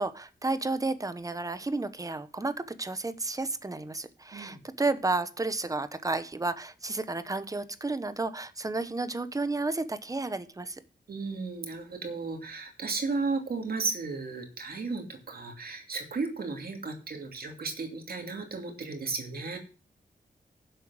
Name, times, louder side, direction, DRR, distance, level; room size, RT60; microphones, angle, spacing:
voice 1, 0.0-10.8, right 3 dB, 20° right, 12 dB, 1.0 m, -32 dB
voice 2, 11.1-19.6, right 4 dB, 60° right, 3 dB, 2.7 m, -34 dB
11.0 x 7.7 x 6.1 m, 0.36 s
wide cardioid pair, 155°, 17 cm